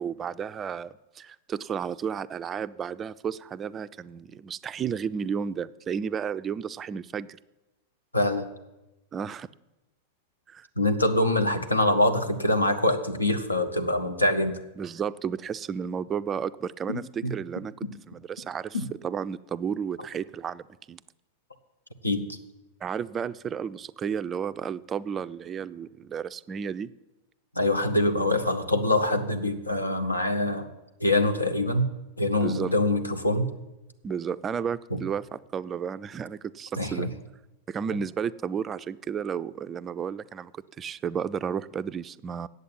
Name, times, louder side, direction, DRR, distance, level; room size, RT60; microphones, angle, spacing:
voice 1, 0.0-7.4 9.1-9.5 10.5-10.7 14.8-17.7 18.1-18.8 19.0-21.0 22.8-26.9 32.4-32.7 34.0-37.1 37.7-42.5, right 7 dB, 25° right, 14 dB, 0.3 m, -32 dB
voice 2, 8.1-8.5 10.8-14.6 16.9-17.3 18.7-18.8 22.0-22.4 27.5-30.7 31.0-31.9 32.2-33.4 34.9-35.0 36.8-37.1, left 1 dB, 85° left, 7 dB, 1.0 m, -24 dB
8.4 x 8.0 x 9.1 m, 1.0 s
figure-of-eight pair, 90°, 0 cm